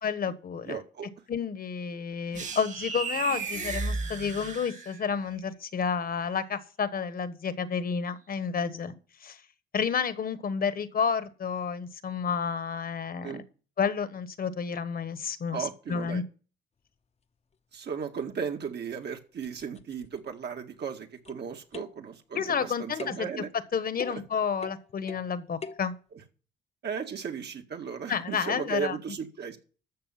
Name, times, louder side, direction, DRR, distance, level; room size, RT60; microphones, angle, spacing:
voice 1, 0.0-0.8 1.3-8.9 9.2-9.4 9.7-13.4 13.8-16.2 22.3-23.3 23.7-25.9 28.1-29.0, left 6 dB, 50° left, 1.3 m, -30 dB
voice 2, 0.6-1.1 13.2-13.4 15.5-16.2 17.7-23.5 24.1-24.2 26.8-29.6, right 6 dB, 60° right, 2.1 m, -36 dB
sound 1, 2.3-5.2, right 4 dB, 35° right, 1.8 m, -34 dB
sound 2, 18.4-18.5 19.0-19.1 19.4-20.3 21.2-21.5 21.7-22.1 23.0-23.3 24.0-24.3 24.6-25.3 25.6-25.9, left 5 dB, 30° left, 0.9 m, -42 dB
13.5 x 6.6 x 5.8 m
cardioid pair, 90°, 20 cm